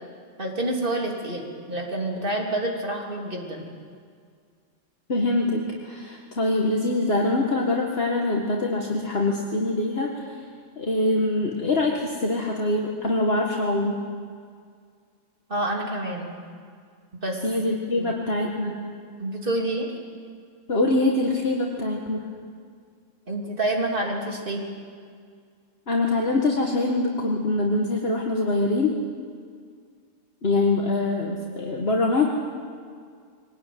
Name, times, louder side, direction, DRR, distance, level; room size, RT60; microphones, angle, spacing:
voice 1, 0.4-3.7 15.5-16.3 17.2-17.4 18.0-18.1 19.2-19.9 23.3-24.6, right 1 dB, 45° right, 1 dB, 3.3 m, -28 dB
voice 2, 5.1-10.4 10.8-14.0 17.4-18.8 20.7-22.3 25.9-29.0 30.4-32.2, left 2 dB, 50° left, -1 dB, 2.0 m, -24 dB
23.5 x 19.5 x 9.4 m, 2.1 s
omnidirectional pair, 1.3 m